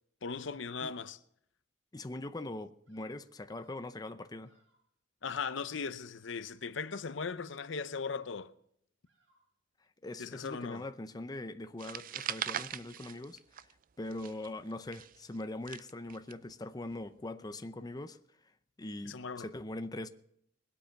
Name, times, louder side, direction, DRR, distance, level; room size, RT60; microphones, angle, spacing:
voice 1, 0.2-1.2 5.2-8.5 10.2-10.9 19.0-19.5, left 5 dB, 75° left, 0.7 m, -38 dB
voice 2, 1.9-4.5 10.0-13.7 14.0-18.2 18.8-20.1, left 2 dB, 20° left, 0.6 m, -42 dB
Bird vocalization bird call bird song, 2.9-4.0 4.4-4.9 5.3-5.8 6.1-6.6 7.0-7.5 7.9-8.4 9.0-9.6, right 3 dB, 70° right, 7.7 m, -72 dB
sound 1, 11.8-13.8 14.1-16.3, right 10 dB, 45° right, 0.4 m, -40 dB
20.5 x 8.4 x 5.8 m
head